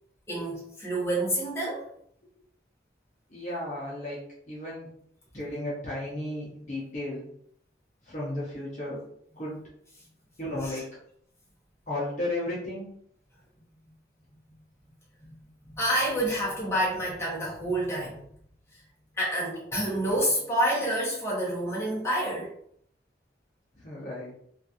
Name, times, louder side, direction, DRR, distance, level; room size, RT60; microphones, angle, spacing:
voice 1, 0.3-1.9 10.6-10.8 15.2-15.3 15.7-18.3 18.7-18.8 19.2-22.5, right 1 dB, 15° left, -7 dB, 1.0 m, -28 dB
voice 2, 3.3-4.9 5.3-7.3 8.1-9.0 9.4-9.6 10.4-10.9 11.9-12.9 23.8-24.3, left 1 dB, 40° left, -6 dB, 0.8 m, -34 dB
3.0 x 2.4 x 2.6 m, 0.65 s
head